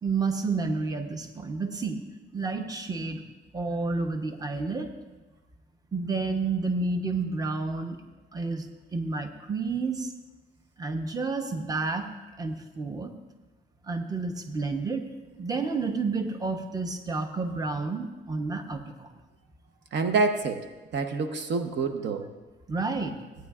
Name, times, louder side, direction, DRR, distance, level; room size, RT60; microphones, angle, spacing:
voice 1, 0.0-2.0 2.3-3.2 3.5-4.9 5.9-8.0 8.3-10.1 10.8-12.1 12.4-13.1 13.8-15.1 15.4-19.1 22.7-23.1, right 3 dB, 20° right, 5 dB, 0.9 m, -30 dB
voice 2, 19.9-22.3, right 4 dB, 60° right, 7 dB, 0.9 m, -27 dB
17.0 x 9.2 x 2.4 m, 1.2 s
cardioid pair, 90°, 20 cm